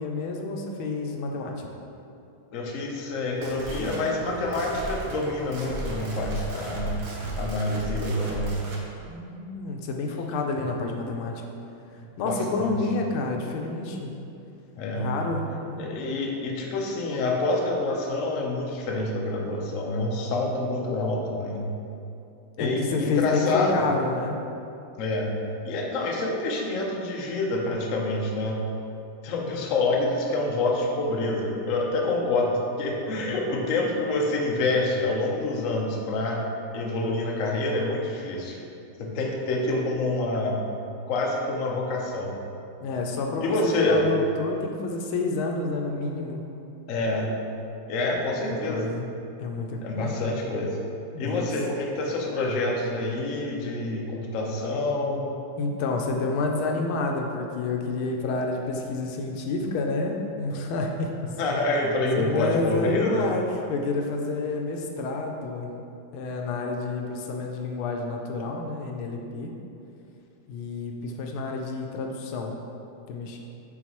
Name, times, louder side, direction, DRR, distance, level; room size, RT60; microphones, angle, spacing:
voice 1, 0.0-1.7 9.0-11.4 12.2-14.1 14.9-15.9 22.6-24.4 42.8-46.4 48.3-48.4 48.7-49.1 49.4-50.1 51.1-51.5 55.6-61.1 62.1-65.7 66.1-69.5 70.5-72.5 73.1-73.4, left 3 dB, 85° left, 2 dB, 1.5 m, -29 dB
voice 2, 2.5-7.0 7.4-8.6 12.3-12.7 14.8-15.1 15.8-21.7 22.6-23.7 25.0-25.3 25.6-28.6 29.2-36.4 36.7-38.6 39.0-40.6 41.1-42.4 43.4-44.0 46.9-47.3 47.9-48.9 49.8-50.8 51.2-55.3 61.4-63.2, left 2 dB, 65° left, -1 dB, 0.8 m, -27 dB
sound 1, 3.2-8.8, right 1 dB, 55° right, 1.1 m, -36 dB
8.1 x 3.9 x 3.0 m, 2.7 s
omnidirectional pair, 2.2 m